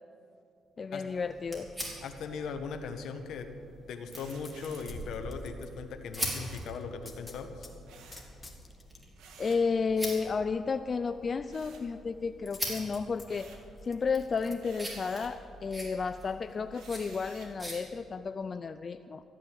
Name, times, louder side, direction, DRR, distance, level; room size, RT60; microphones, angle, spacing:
voice 1, 0.8-1.7 9.4-19.2, left 5 dB, 40° left, 10 dB, 0.4 m, -32 dB
cigarette lighter, 1.1-17.8, right 1 dB, 15° right, 4.4 m, -43 dB
voice 2, 2.0-3.5 3.9-7.7, left 5 dB, 75° left, 7 dB, 1.3 m, -39 dB
sound 1, 4.1-5.7 6.1-7.7 8.1-9.0 12.5-14.5 15.0-15.1, left 3 dB, 20° left, 2.0 m, -50 dB
sound 2, 4.1-5.0 6.2-6.7 7.8-8.3 9.1-9.7 11.5-12.3 12.7-13.7 14.6-15.4 16.7-17.6, right 5 dB, 85° right, 1.8 m, -54 dB
14.5 x 9.1 x 8.5 m, 2.6 s
cardioid pair, 90°, 0 cm